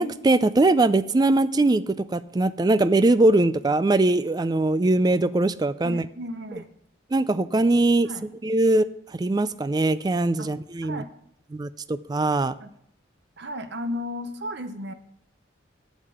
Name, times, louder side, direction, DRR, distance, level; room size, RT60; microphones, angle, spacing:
voice 1, 0.0-6.1 7.1-8.1 8.4-8.8 9.2-11.0 11.5-12.5, right 2 dB, 20° right, 15 dB, 0.3 m, -21 dB
voice 2, 5.8-6.7 8.0-8.3 10.4-10.5 10.8-11.1 12.6-12.7 13.4-14.9, left 1 dB, 55° right, 10 dB, 0.7 m, -34 dB
8.5 x 7.3 x 6.8 m, 0.74 s
head